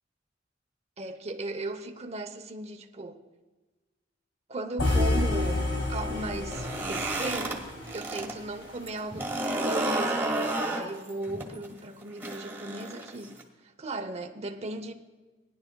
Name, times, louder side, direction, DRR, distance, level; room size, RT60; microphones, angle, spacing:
voice 1, 1.0-3.2 4.5-7.7 7.9-9.4 9.6-14.9, right 2 dB, 35° right, 0.9 m, -37 dB
sound 1, 4.8-8.9, left 2 dB, 75° left, 2.1 m, -29 dB
sound 2, 6.4-8.3 8.6-13.4, right 2 dB, 10° right, 1.7 m, -31 dB
19.5 x 11.0 x 2.3 m
head